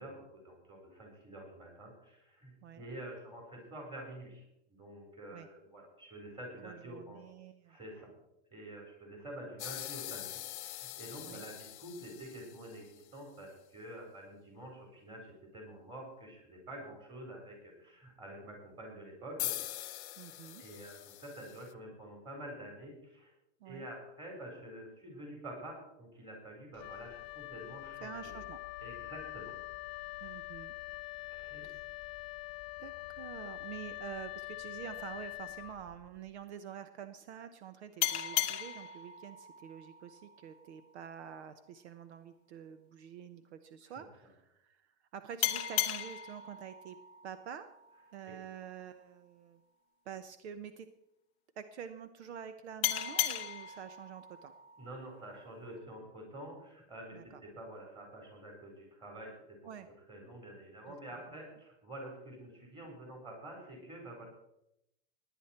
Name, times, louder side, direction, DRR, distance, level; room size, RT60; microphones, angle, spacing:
voice 1, 0.0-4.4 4.7-7.3 7.7-8.1 8.5-19.5 20.6-23.3 23.6-28.1 28.8-29.5 31.2-31.7 44.0-44.1 48.3-48.4 54.8-59.7 60.1-64.3, right 1 dB, 15° right, 0 dB, 4.1 m, -48 dB
voice 2, 6.6-7.8 11.2-11.4 20.2-20.6 23.6-23.9 28.0-28.6 30.2-30.7 31.6-31.8 32.8-47.0 47.2-47.7 48.1-49.6 50.0-50.9 51.6-54.5 57.1-57.4 59.6-59.9 60.9-61.0 61.3-61.5, right 8 dB, 70° right, 11 dB, 1.0 m, -47 dB
sound 1, 9.6-13.1 19.4-21.7, left 14 dB, 70° left, 0.8 m, -43 dB
Wind instrument woodwind instrument, 26.7-36.2, left 21 dB, 40° left, 1.0 m, -44 dB
sound 2, 38.0-41.2 45.4-48.6 52.8-55.8, left 13 dB, 20° left, 0.4 m, -37 dB
17.5 x 10.0 x 4.4 m, 0.81 s
supercardioid pair, 165°, 35 cm